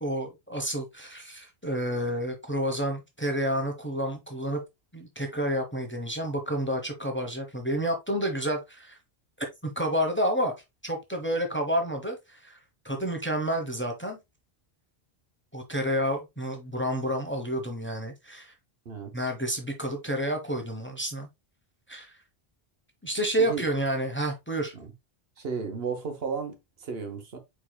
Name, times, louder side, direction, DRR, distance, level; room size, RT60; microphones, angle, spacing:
voice 1, 0.0-4.6 4.9-9.0 9.8-10.5 10.8-12.6 12.8-14.2 15.5-18.5 19.1-21.3 21.9-22.2 23.0-24.7, equal, 10° left, 0.9 m, -29 dB
voice 2, 18.8-19.3 23.4-23.7 24.7-24.9 25.4-27.4, right 5 dB, 70° right, 1.2 m, -34 dB
4.7 x 4.6 x 2.2 m
omnidirectional pair, 1.0 m